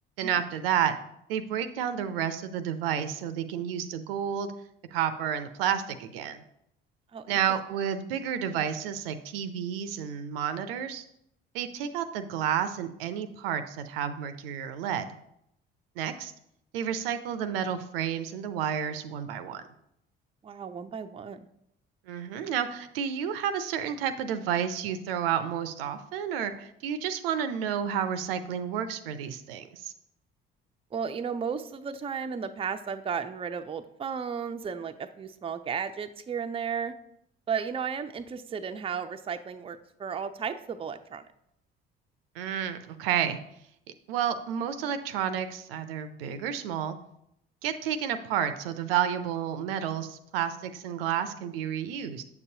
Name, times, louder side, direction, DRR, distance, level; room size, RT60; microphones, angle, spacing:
voice 1, 0.2-1.0 1.3-4.5 4.9-6.4 7.3-11.0 11.5-15.1 16.0-16.3 16.7-19.6 22.1-29.9 42.4-43.4 44.1-47.0 47.6-52.2, right 9 dB, 75° right, 10 dB, 0.6 m, -30 dB
voice 2, 20.4-21.4 30.9-36.9 37.5-41.2, right 6 dB, 20° right, 8 dB, 0.5 m, -34 dB
8.2 x 6.7 x 2.7 m, 0.76 s
figure-of-eight pair, 50°, 30 cm